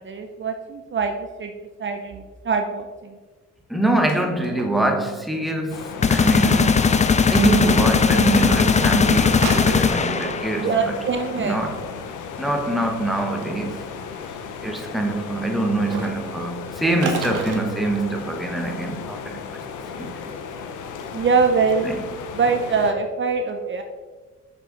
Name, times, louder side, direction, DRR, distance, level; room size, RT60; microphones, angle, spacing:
voice 1, 0.0-1.5 1.8-3.2 10.6-11.6 21.1-21.9 22.3-23.8, right 5 dB, 40° right, 0.7 m, -23 dB
voice 2, 3.7-7.0 7.3-11.0 11.3-11.8 12.4-13.8 14.3-14.4 14.6-19.6 19.9-20.2 21.8-22.0, right 2 dB, ahead, 1.1 m, -24 dB
sound 1, 3.8-4.2 4.4-5.1 5.3-5.4 7.3-7.5 9.2-10.0 12.3-12.7 13.2-13.5 15.8-16.1 16.9-17.6, right 3 dB, 85° right, 1.5 m, -30 dB
sound 2, 5.7-22.9, left 5 dB, 85° left, 0.9 m, -35 dB
sound 3, 6.0-10.8, left 5 dB, 25° left, 0.5 m, -18 dB
6.7 x 6.2 x 3.9 m
cardioid pair, 90°, 30 cm